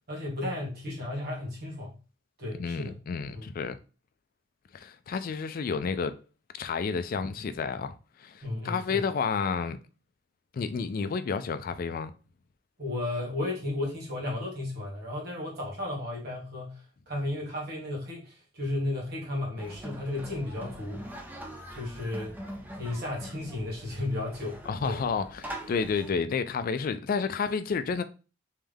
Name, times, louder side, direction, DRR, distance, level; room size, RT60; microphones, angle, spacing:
voice 1, 0.1-2.0 2.4-2.9 3.3-3.4 8.4-9.0 12.8-16.8 17.1-21.1 21.7-22.3 22.8-24.6 24.8-25.0, left 2 dB, 55° right, 1.6 m, -34 dB
voice 2, 2.5-3.8 4.7-6.2 6.6-9.8 10.5-12.1 24.7-28.0, left 5 dB, 45° left, 0.3 m, -30 dB
sound 1, 19.6-26.1, equal, 10° right, 0.6 m, -43 dB
3.5 x 3.2 x 3.4 m
head